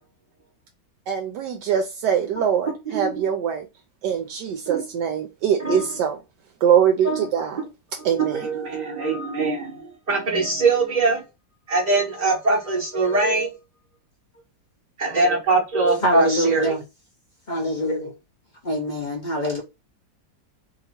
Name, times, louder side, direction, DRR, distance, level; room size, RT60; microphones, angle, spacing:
voice 1, 1.1-3.7 4.0-6.2 6.6-7.6 8.0-8.5, right 8 dB, 75° right, 1.1 m, -22 dB
voice 2, 2.9-3.2 4.7-4.8 5.6-6.0 7.0-7.3 8.0-11.2 11.7-13.5 15.0-16.7, right 3 dB, 25° right, 1.1 m, -22 dB
voice 3, 16.0-16.8 17.5-18.1 18.6-19.6, equal, 55° left, 0.5 m, -24 dB
2.9 x 2.8 x 4.1 m
omnidirectional pair, 2.0 m